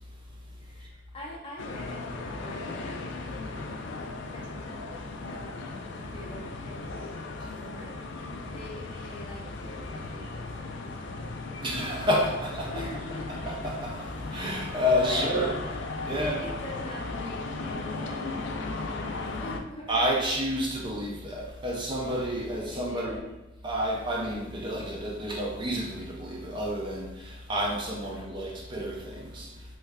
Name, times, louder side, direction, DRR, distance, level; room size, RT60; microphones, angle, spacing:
voice 1, 0.6-7.1 7.5-7.9 8.4-11.4 12.0-12.1 12.7-13.3 14.7-15.6 16.0-20.0 22.7-23.2 28.0-28.3, left 1 dB, 30° left, 0.7 m, -44 dB
sound 1, 1.6-19.6, left 3 dB, 60° left, 0.3 m, -36 dB
voice 2, 11.6-12.8 13.4-15.6 16.1-16.4 19.9-23.2 23.6-29.5, equal, 25° right, 0.4 m, -30 dB
3.2 x 2.3 x 3.4 m
head